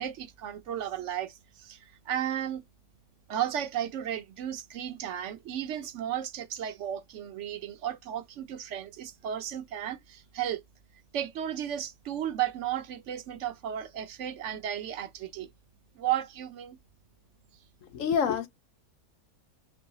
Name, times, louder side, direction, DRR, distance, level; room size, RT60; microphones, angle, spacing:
voice 1, 0.0-2.6 3.3-10.6 11.1-15.5 16.0-16.8, right 10 dB, 60° right, 0.9 m, -34 dB
voice 2, 17.8-18.5, left 7 dB, 65° left, 1.0 m, -27 dB
4.7 x 2.0 x 3.9 m
omnidirectional pair, 1.6 m